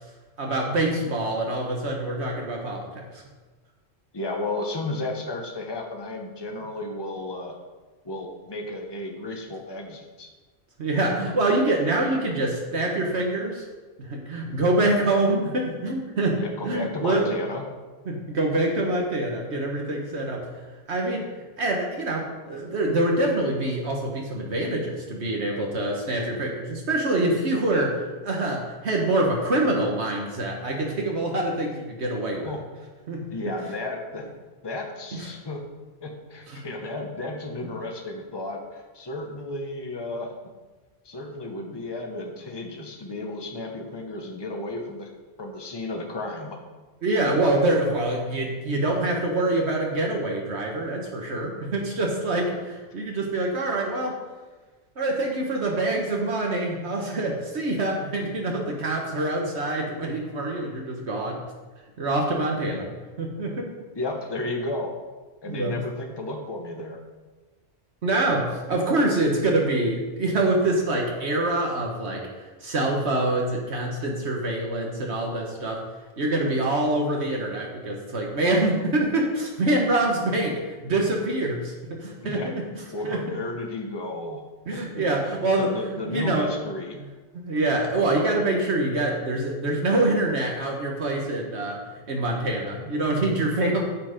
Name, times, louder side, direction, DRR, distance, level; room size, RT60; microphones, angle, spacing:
voice 1, 0.4-3.2 10.8-13.6 14.0-16.4 16.6-17.4 18.1-20.5 20.9-21.3 21.6-32.5 33.1-33.2 35.1-35.3 36.5-36.6 47.0-54.2 55.0-61.4 62.0-62.9 63.2-63.7 65.5-65.7 68.0-75.8 76.2-82.6 83.0-83.4 84.7-85.7 86.1-86.5 87.3-91.8 92.1-93.8, right 2 dB, 75° right, 0 dB, 1.6 m, -25 dB
voice 2, 4.1-7.5 8.0-10.3 16.4-17.6 32.4-32.6 33.3-34.3 34.6-35.6 36.0-40.3 41.0-45.1 45.4-46.6 62.7-62.8 63.9-64.9 65.4-67.0 82.2-82.5 82.9-84.4 84.7-87.0, left 2 dB, 25° left, 2 dB, 1.1 m, -33 dB
9.0 x 7.8 x 5.1 m, 1.3 s
omnidirectional pair, 1.1 m